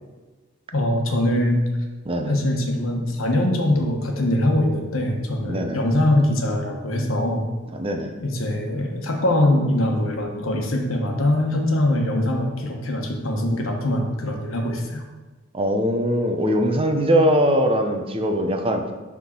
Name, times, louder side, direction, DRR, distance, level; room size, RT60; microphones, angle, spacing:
voice 1, 0.7-1.7 2.3-7.4 8.2-15.0, left 1 dB, 80° left, 2 dB, 1.1 m, -22 dB
voice 2, 5.5-5.8 7.7-8.1 15.5-18.8, equal, 30° right, 4 dB, 0.7 m, -21 dB
6.2 x 3.7 x 5.9 m, 1.3 s
head